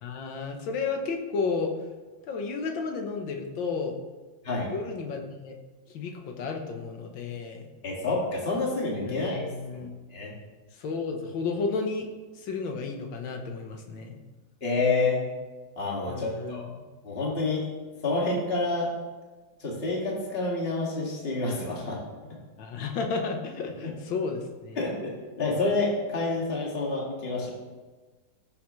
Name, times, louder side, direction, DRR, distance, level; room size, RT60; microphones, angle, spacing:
voice 1, 0.0-1.7 2.3-4.0 4.7-5.6 5.9-7.6 9.1-9.9 10.7-12.1 12.3-14.2 16.1-16.9 22.6-25.0, left 4 dB, 80° left, 3 dB, 1.9 m, -32 dB
voice 2, 7.8-9.8 10.1-10.3 14.6-15.2 15.8-16.6 17.0-17.7 18.0-18.9 19.6-22.0 24.8-27.5, left 3 dB, 30° left, -3 dB, 2.3 m, -28 dB
16.0 x 7.1 x 3.2 m, 1.3 s
omnidirectional pair, 2.1 m